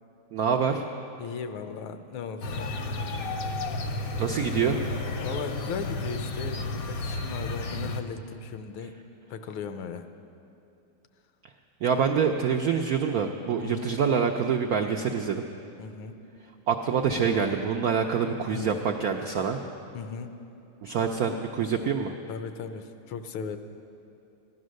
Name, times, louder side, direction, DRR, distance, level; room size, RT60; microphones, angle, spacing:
voice 1, 0.3-0.8 4.2-4.8 11.8-15.4 16.7-19.6 20.8-22.1, right 6 dB, 80° right, 3 dB, 0.8 m, -26 dB
voice 2, 1.2-2.7 5.2-8.9 9.3-10.1 13.6-13.9 15.8-16.2 18.5-18.8 19.9-20.3 22.3-23.6, left 6 dB, 80° left, 9 dB, 1.6 m, -37 dB
sound 1, 2.4-8.0, left 2 dB, 60° left, 1.0 m, -32 dB
15.0 x 11.0 x 6.4 m, 2.7 s
omnidirectional pair, 2.2 m